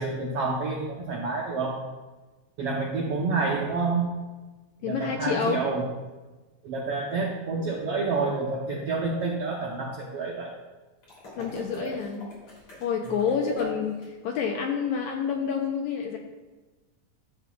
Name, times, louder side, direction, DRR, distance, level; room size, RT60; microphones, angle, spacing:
voice 1, 0.0-1.8 2.6-4.1 4.8-5.9 6.6-10.5 11.4-12.0 13.2-13.7, right 3 dB, 75° right, -2 dB, 1.4 m, -29 dB
voice 2, 4.8-5.6 11.4-12.3 12.8-16.2, left 6 dB, 75° left, 2 dB, 1.8 m, -28 dB
sound 1, 11.0-14.1, left 2 dB, 40° left, 3.6 m, -47 dB
12.5 x 7.7 x 2.3 m, 1.2 s
omnidirectional pair, 3.9 m